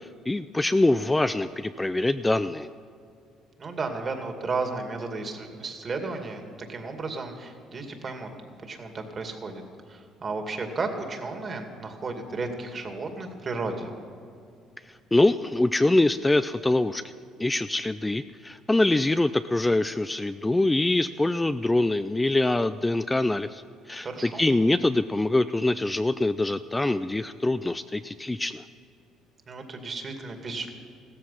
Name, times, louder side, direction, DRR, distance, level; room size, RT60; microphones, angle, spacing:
voice 1, 0.3-2.7 15.1-17.1 17.4-28.6, left 2 dB, 15° left, 11 dB, 0.4 m, -24 dB
voice 2, 3.6-8.3 8.6-13.9 24.0-24.5 29.5-30.7, right 3 dB, 40° right, 4 dB, 2.3 m, -33 dB
16.0 x 14.0 x 5.8 m, 2.4 s
supercardioid pair, 80°, 0 cm